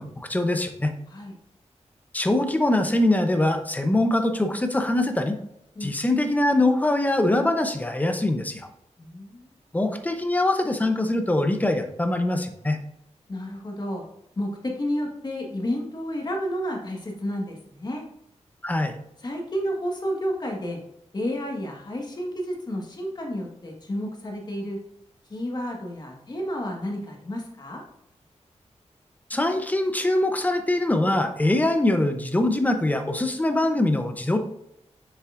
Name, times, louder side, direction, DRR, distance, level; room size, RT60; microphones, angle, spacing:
voice 1, 0.0-0.9 2.1-5.3 5.8-8.7 9.7-12.8 18.6-19.0 29.3-34.4, left 1 dB, 15° left, 6 dB, 0.7 m, -23 dB
voice 2, 9.0-9.5 13.3-14.0 14.4-18.0 19.2-20.8 21.1-24.8 25.3-27.8, equal, 35° left, 0 dB, 1.5 m, -31 dB
7.3 x 6.7 x 2.5 m, 0.77 s
wide cardioid pair, 150°, 12 cm